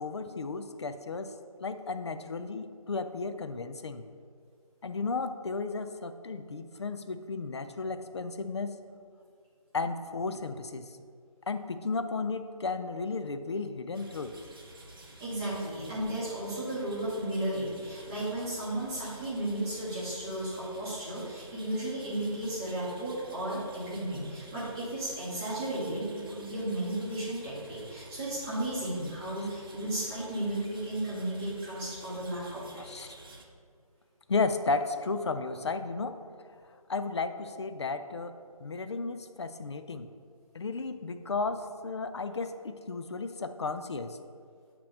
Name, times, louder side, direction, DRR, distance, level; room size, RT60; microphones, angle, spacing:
voice 1, 0.0-1.3 1.6-4.0 4.8-8.8 9.7-10.9 11.5-14.4 32.8-33.1 34.3-36.2 36.9-40.1 40.5-44.2, left 4 dB, 50° left, 9 dB, 0.4 m, -34 dB
sound 1, 13.9-33.4, right 2 dB, 40° right, 0.7 m, -51 dB
voice 2, 15.2-32.8, right 1 dB, 10° right, -10 dB, 0.9 m, -34 dB
8.4 x 3.0 x 5.2 m, 2.2 s
figure-of-eight pair, 170°, 19 cm